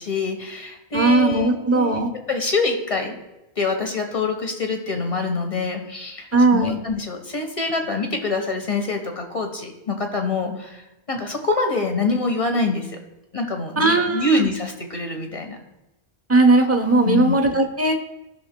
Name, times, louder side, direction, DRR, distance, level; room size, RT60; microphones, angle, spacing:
voice 1, 0.0-2.0 2.3-3.1 3.6-10.8 11.1-13.0 13.3-15.6 17.0-17.3, left 3 dB, 35° left, 3 dB, 1.2 m, -25 dB
voice 2, 0.9-2.1 6.3-6.8 13.8-14.5 16.3-17.9, right 2 dB, 15° right, 4 dB, 0.7 m, -18 dB
16.5 x 6.0 x 2.2 m, 0.97 s
omnidirectional pair, 1.1 m